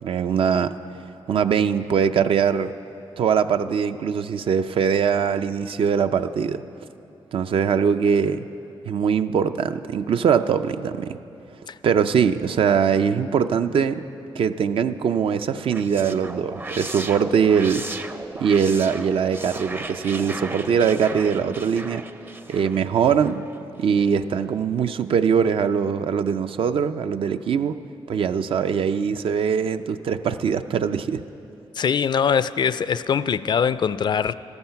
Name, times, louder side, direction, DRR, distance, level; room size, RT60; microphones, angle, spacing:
voice 1, 0.0-0.7 1.3-2.7 3.2-6.6 7.3-8.5 8.8-11.2 11.8-14.0 14.3-17.8 18.4-22.0 22.5-23.5 23.8-27.7 28.1-31.2, right 7 dB, 70° right, 10 dB, 0.5 m, -22 dB
sound 1, 15.5-23.6, right 2 dB, 20° right, 0.5 m, -36 dB
voice 2, 31.8-34.3, left 7 dB, 50° left, 15 dB, 0.4 m, -22 dB
13.5 x 13.0 x 5.7 m, 2.8 s
cardioid pair, 90°, 10 cm